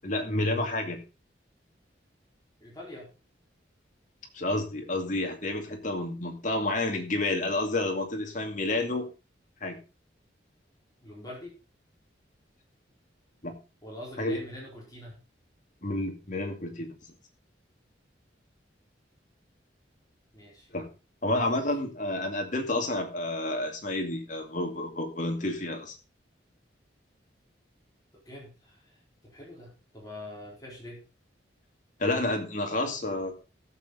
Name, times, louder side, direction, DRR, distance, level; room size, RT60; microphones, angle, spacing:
voice 1, 0.0-1.0 4.3-9.1 9.6-9.8 13.4-13.5 14.2-14.4 15.8-16.9 20.7-20.9 21.2-26.0 32.0-33.3, left 2 dB, 45° left, 3 dB, 2.3 m, -30 dB
voice 2, 2.6-3.1 11.0-11.6 13.8-15.2 20.3-20.7 21.5-21.8 28.1-31.0, left 1 dB, 20° left, -3 dB, 4.6 m, -45 dB
15.5 x 7.4 x 4.0 m, 0.31 s
head